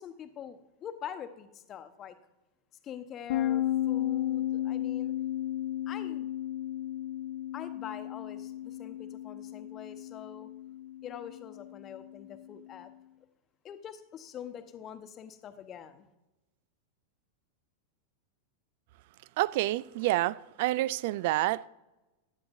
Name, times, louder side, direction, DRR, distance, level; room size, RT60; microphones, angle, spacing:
voice 1, 0.0-2.2 2.8-5.1 5.9-6.3 7.5-10.5 11.0-12.9 13.6-16.1, left 9 dB, 30° left, 1.1 m, -44 dB
sound 1, 3.3-12.8, left 12 dB, 55° left, 1.0 m, -34 dB
voice 2, 19.4-21.7, right 17 dB, 50° right, 0.4 m, -28 dB
23.0 x 11.5 x 2.7 m
figure-of-eight pair, 90°, 0 cm